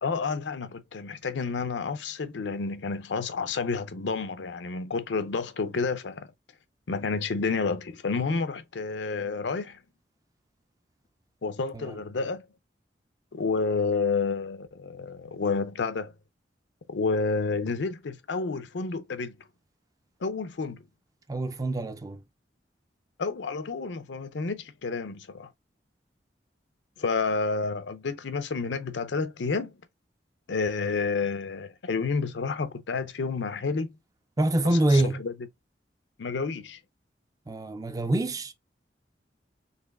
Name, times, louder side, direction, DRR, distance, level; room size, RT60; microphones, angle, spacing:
voice 1, 0.0-6.3 6.9-9.8 11.4-12.5 13.3-16.1 16.9-19.4 20.2-20.8 23.2-25.5 27.0-29.8 30.5-34.0 34.6-35.3 36.2-36.8, left 4 dB, 80° left, 0.6 m, -30 dB
voice 2, 21.3-22.2 34.4-35.2 37.5-38.5, right 1 dB, 20° right, 0.4 m, -25 dB
4.1 x 3.0 x 2.4 m
head